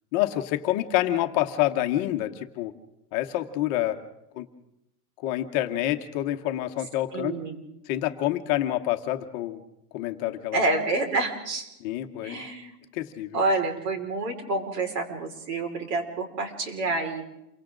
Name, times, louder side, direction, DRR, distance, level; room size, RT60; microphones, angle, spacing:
voice 1, 0.1-2.7 3.1-4.0 4.4-4.5 5.2-7.3 7.9-9.6 9.9-10.6 11.8-12.4 12.9-13.4, left 14 dB, 25° left, 6 dB, 0.9 m, -27 dB
voice 2, 7.1-7.6 10.5-11.7 12.2-12.8 13.3-17.2, right 2 dB, 90° right, 4 dB, 5.2 m, -28 dB
28.5 x 24.5 x 3.8 m, 0.87 s
supercardioid pair, 180°, 47 cm